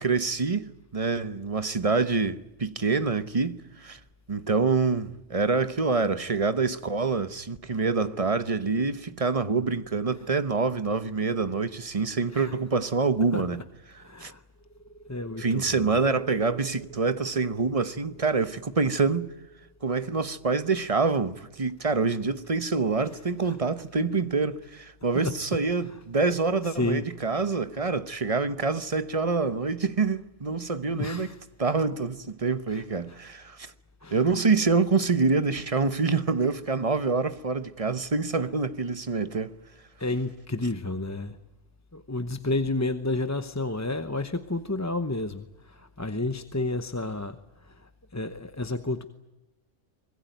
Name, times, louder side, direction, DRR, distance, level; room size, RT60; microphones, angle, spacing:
voice 1, 0.0-4.0 4.3-13.6 14.2-14.3 15.4-19.3 19.8-31.3 31.6-33.7 34.1-39.5, right 4 dB, 30° right, 1.0 m, -26 dB
voice 2, 14.0-14.4 15.1-15.9 23.4-23.6 25.2-25.3 25.9-26.0 26.6-27.0 30.9-31.4 32.7-33.2 34.0-34.2 40.0-41.4 41.9-49.0, left 2 dB, 15° left, 0.8 m, -31 dB
sound 1, 14.5-22.0, right 3 dB, 45° left, 2.0 m, -50 dB
25.0 x 21.0 x 9.3 m
omnidirectional pair, 1.3 m